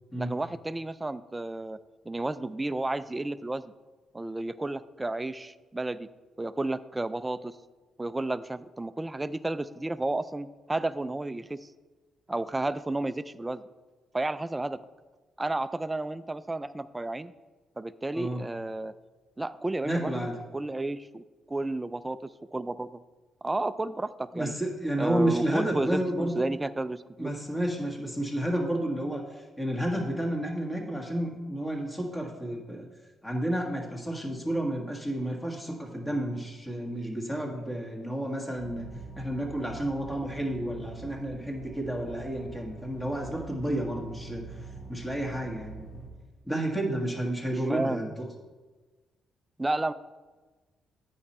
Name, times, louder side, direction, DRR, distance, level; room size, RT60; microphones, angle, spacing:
voice 1, 0.2-1.8 2.1-3.7 4.1-6.1 6.4-7.6 8.0-11.7 12.3-13.6 14.1-14.8 15.4-17.3 17.8-18.9 19.4-20.1 20.5-22.9 23.4-24.5 25.0-27.3 47.5-48.1 49.6-49.9, right 2 dB, 15° right, 14 dB, 0.3 m, -32 dB
voice 2, 19.8-20.3 24.3-26.4 27.2-29.2 29.6-32.9 33.2-38.9 39.2-44.4 44.9-45.9 46.5-48.3, right 1 dB, 10° left, 0 dB, 1.6 m, -31 dB
sound 1, 38.6-46.1, right 3 dB, 60° left, 2.0 m, -44 dB
8.8 x 5.6 x 4.3 m, 1.3 s
cardioid pair, 90°, 0 cm